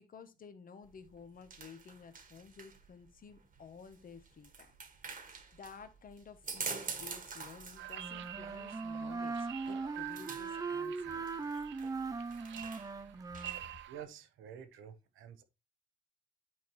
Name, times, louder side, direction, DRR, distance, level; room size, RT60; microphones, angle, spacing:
voice 1, 0.0-4.7 5.5-11.6, left 5 dB, 45° left, 1.1 m, -53 dB
sound 1, 0.8-13.8, right 5 dB, 45° right, 1.7 m, -47 dB
sound 2, 7.8-14.0, right 13 dB, 70° right, 0.7 m, -48 dB
Wind instrument woodwind instrument, 8.0-13.6, right 4 dB, 20° right, 0.5 m, -39 dB
voice 2, 13.9-15.4, right 8 dB, 85° right, 1.1 m, -49 dB
9.3 x 4.5 x 3.0 m
cardioid pair, 90°, 20 cm